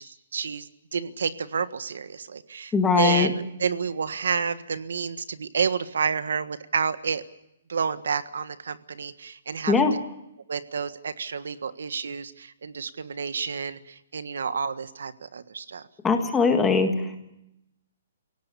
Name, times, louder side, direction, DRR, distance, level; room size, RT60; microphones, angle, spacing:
voice 1, 0.0-7.2 7.7-9.9 10.5-15.9, right 6 dB, 80° right, 12 dB, 1.5 m, -30 dB
voice 2, 2.7-3.3 9.7-9.9 16.0-17.2, left 5 dB, 5° left, 5 dB, 1.7 m, -21 dB
29.0 x 17.5 x 6.9 m, 0.84 s
hypercardioid pair, 175°, 0 cm